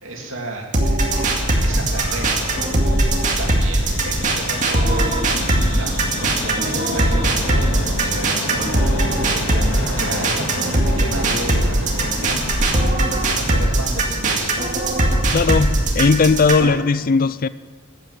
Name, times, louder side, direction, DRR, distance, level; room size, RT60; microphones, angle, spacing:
voice 1, 0.0-2.5 3.4-5.1 5.5-8.6 9.3-12.7 13.1-14.6, right 2 dB, 70° right, 0 dB, 3.0 m, -32 dB
sound 1, 0.7-16.7, right 2 dB, 40° right, 2.1 m, -20 dB
sound 2, 1.0-16.6, left 1 dB, 65° left, 3.5 m, -28 dB
voice 2, 15.3-17.5, left 4 dB, 45° left, 16 dB, 0.4 m, -17 dB
14.0 x 9.3 x 7.9 m, 1.4 s
head